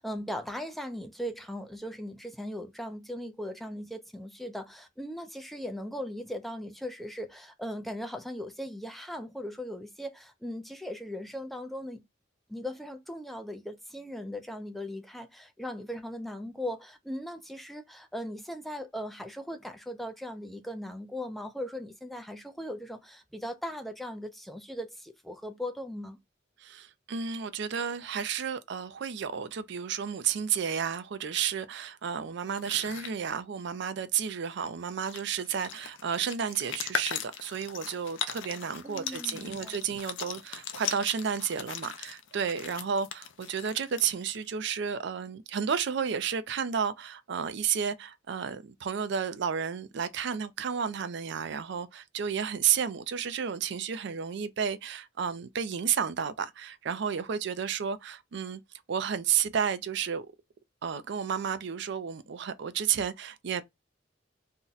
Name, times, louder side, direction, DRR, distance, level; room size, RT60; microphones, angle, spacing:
voice 1, 0.0-12.0 12.5-26.2 38.8-39.8, equal, ahead, 0.4 m, -38 dB
voice 2, 26.6-58.6 58.9-60.3 60.8-63.6, right 7 dB, 65° right, 0.4 m, -32 dB
sound 1, 32.5-33.2 34.6-34.7 34.9-44.5, left 8 dB, 80° left, 0.5 m, -39 dB
2.7 x 2.1 x 3.8 m
head